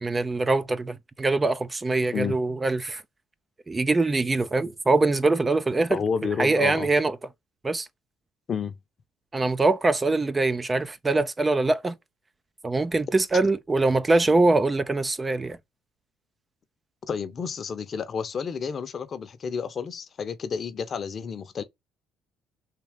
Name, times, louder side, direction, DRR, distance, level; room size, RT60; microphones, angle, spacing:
voice 1, 0.0-3.0 3.7-6.0 6.4-7.2 7.6-7.9 9.3-12.0 12.6-15.6, right 3 dB, 25° right, 0.4 m, -23 dB
voice 2, 5.9-6.9 8.5-8.7 17.1-21.6, left 6 dB, 45° left, 0.8 m, -30 dB
3.6 x 2.7 x 3.5 m
supercardioid pair, 70°, 0 cm